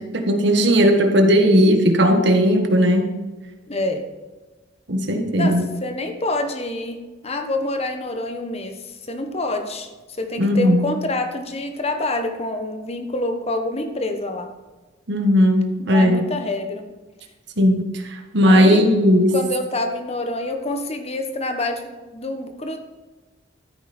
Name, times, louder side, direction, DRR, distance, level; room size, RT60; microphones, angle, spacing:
voice 1, 0.0-3.1 4.9-5.6 10.4-10.9 15.1-16.2 17.6-19.4, equal, 65° right, 4 dB, 1.7 m, -17 dB
voice 2, 3.7-4.0 5.4-9.9 10.2-14.5 15.9-16.8 18.4-18.8 19.3-22.8, left 2 dB, 35° left, 6 dB, 1.3 m, -27 dB
13.5 x 9.1 x 4.4 m, 1.2 s
head